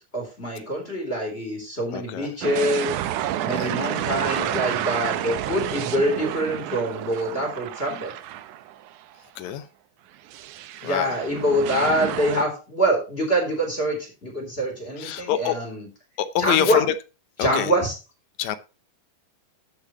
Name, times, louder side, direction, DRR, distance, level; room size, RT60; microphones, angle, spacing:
voice 1, 0.1-2.9 3.4-8.1 10.8-15.9 16.4-16.8 17.4-18.0, equal, 20° left, 3.9 m, -25 dB
voice 2, 1.9-2.3 3.6-3.7 4.4-4.5 9.4-9.7 10.8-11.1 15.0-15.6 16.2-16.9 17.4-17.7 18.4-18.6, left 10 dB, 75° left, 2.1 m, -26 dB
sound 1, 2.4-9.0 9.4-9.5 10.3-12.5, right 12 dB, 90° right, 2.3 m, -30 dB
13.5 x 6.8 x 3.1 m
omnidirectional pair, 3.4 m